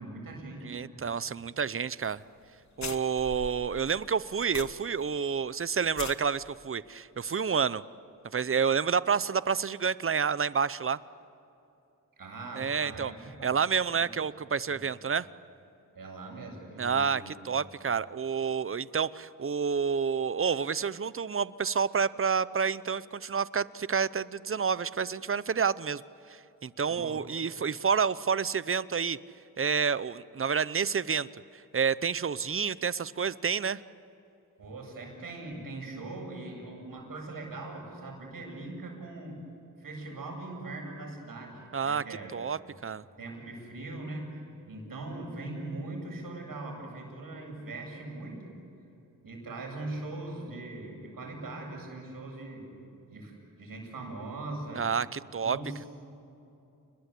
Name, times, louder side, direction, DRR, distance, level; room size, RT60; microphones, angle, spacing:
voice 1, 0.0-1.1 12.2-13.6 14.7-14.8 15.9-17.3 26.9-27.2 34.6-39.4 39.8-42.3 43.2-44.4 44.7-48.5 49.2-52.8 53.1-54.8 55.4-55.9, right 2 dB, 75° right, 1 dB, 8.0 m, -41 dB
voice 2, 0.6-2.2 2.8-7.8 8.3-11.0 12.6-13.1 13.4-15.3 16.8-26.0 26.3-29.2 29.6-31.3 31.7-33.8 41.7-42.0 42.3-43.0 54.8-55.6, right 6 dB, 40° right, 17 dB, 0.8 m, -29 dB
sound 1, 2.0-2.2 2.4-2.5 2.8-5.0 5.3-5.4 5.8-6.2, left 5 dB, 50° left, 1.7 m, -41 dB
30.0 x 21.5 x 8.5 m, 2.8 s
cardioid pair, 70°, 35 cm